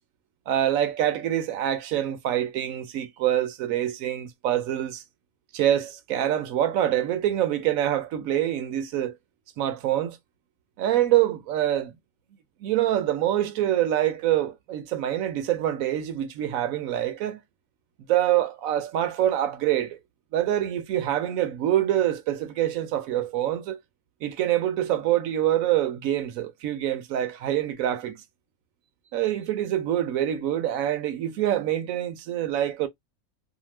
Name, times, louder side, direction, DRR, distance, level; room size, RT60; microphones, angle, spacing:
voice 1, 0.5-5.0 5.5-9.2 9.6-10.2 10.8-11.9 12.6-17.4 18.1-20.0 20.3-23.8 24.2-28.2 29.1-32.9, right 12 dB, 75° right, 1.0 m, -25 dB
2.8 x 2.1 x 3.1 m
omnidirectional pair, 1.5 m